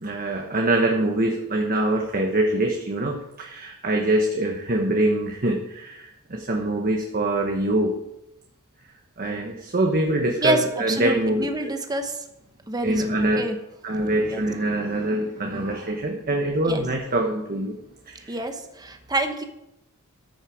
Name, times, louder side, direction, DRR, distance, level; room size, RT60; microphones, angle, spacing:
voice 1, 0.0-7.9 9.2-11.7 12.8-13.4 13.8-17.7 18.1-18.4, right 1 dB, 40° right, 2 dB, 1.1 m, -24 dB
voice 2, 10.4-12.2 12.7-13.6 14.3-14.4 16.7-16.8 18.3-19.4, right 2 dB, 20° right, 6 dB, 1.0 m, -27 dB
13.5 x 6.5 x 4.9 m, 0.86 s
head